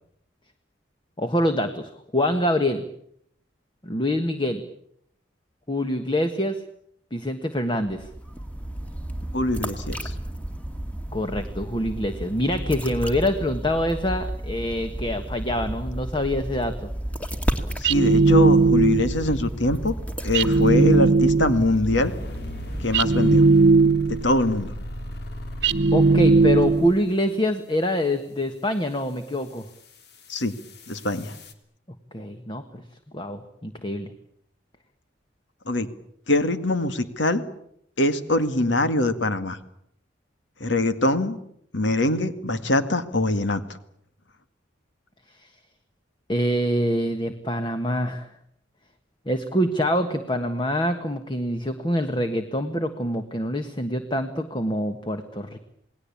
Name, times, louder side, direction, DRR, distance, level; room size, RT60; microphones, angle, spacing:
voice 1, 1.2-2.8 3.8-4.6 5.7-6.6 7.1-8.1 11.1-16.9 25.9-29.7 32.1-32.8 33.1-34.1 45.4-45.5 46.3-48.3 49.2-55.6, left 1 dB, 25° left, 8 dB, 1.5 m, -25 dB
sound 1, 7.8-23.7, right 1 dB, 5° left, 2.1 m, -32 dB
voice 2, 9.3-10.1 17.8-19.9 20.2-22.1 22.8-23.5 24.1-24.7 30.3-30.5 30.9-31.3 35.7-35.9 36.3-37.4 38.0-39.6 40.6-41.4 41.7-43.6, left 2 dB, 70° left, 10 dB, 2.1 m, -23 dB
sound 2, 17.8-19.2 20.3-21.7 22.9-24.3 25.6-27.0, right 3 dB, 60° right, 1.1 m, -18 dB
sound 3, 22.0-27.2 28.9-31.5, left 1 dB, 55° left, 3.1 m, -38 dB
28.5 x 19.5 x 8.6 m, 0.72 s
head